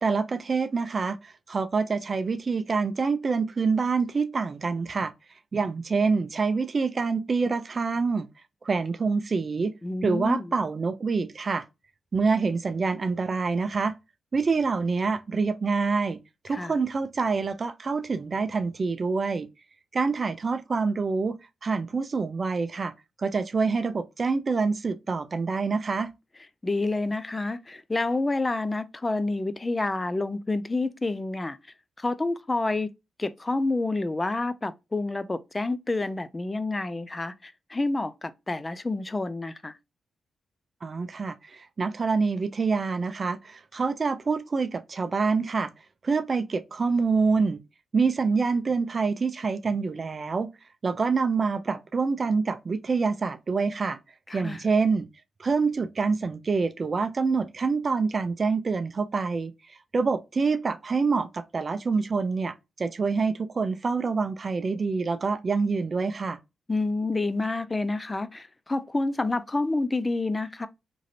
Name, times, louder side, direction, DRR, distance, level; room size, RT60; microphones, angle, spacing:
voice 1, 0.0-5.1 5.5-8.3 8.6-9.7 10.0-11.6 12.1-13.9 14.3-19.5 19.9-22.9 23.2-26.1 40.8-45.7 46.0-47.6 47.9-50.5 50.8-54.0 54.3-55.1 55.4-59.5 59.9-66.4, right 4 dB, 45° right, 0.4 m, -26 dB
voice 2, 9.8-10.5 16.5-16.7 26.6-31.6 32.0-32.9 33.2-39.8 54.3-54.6 66.7-70.7, left 2 dB, 25° left, 0.4 m, -28 dB
3.0 x 2.5 x 2.7 m
supercardioid pair, 50°, 0 cm